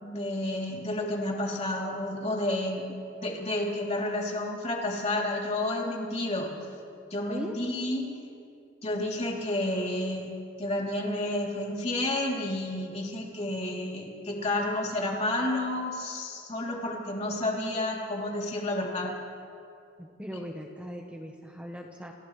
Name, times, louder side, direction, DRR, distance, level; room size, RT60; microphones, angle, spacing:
voice 1, 0.0-2.8 3.2-6.5 7.1-8.1 8.8-10.3 10.6-19.1, left 1 dB, 35° left, -2 dB, 3.3 m, -30 dB
voice 2, 20.0-22.1, equal, 5° right, 1 dB, 1.1 m, -39 dB
29.0 x 27.5 x 3.3 m, 2.6 s
head